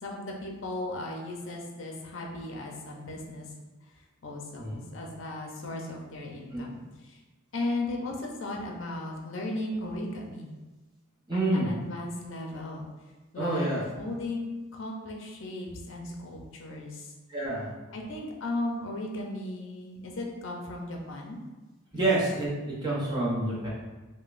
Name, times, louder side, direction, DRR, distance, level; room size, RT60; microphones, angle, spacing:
voice 1, 0.0-3.5 4.2-7.2 7.5-10.5 11.3-12.9 13.3-13.7 14.0-17.1 17.9-21.4 21.9-22.1, left 2 dB, 60° left, 0 dB, 0.6 m, -36 dB
voice 2, 11.3-11.7 13.4-13.8 17.3-17.7 21.9-23.7, right 2 dB, 20° right, -6 dB, 0.7 m, -28 dB
5.0 x 2.2 x 2.5 m, 1.2 s
head